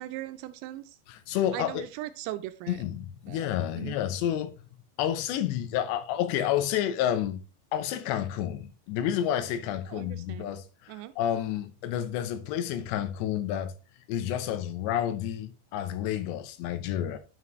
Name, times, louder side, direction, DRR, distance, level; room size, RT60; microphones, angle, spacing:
voice 1, 0.0-1.0 1.5-2.8 3.3-3.5 3.8-4.0 9.9-10.6 10.9-11.1, right 14 dB, 90° right, 2.8 m, -39 dB
voice 2, 1.1-1.9 2.7-4.5 5.0-7.4 7.7-13.7 14.1-17.2, left 11 dB, 85° left, 3.0 m, -30 dB
9.6 x 5.8 x 3.1 m
omnidirectional pair, 5.0 m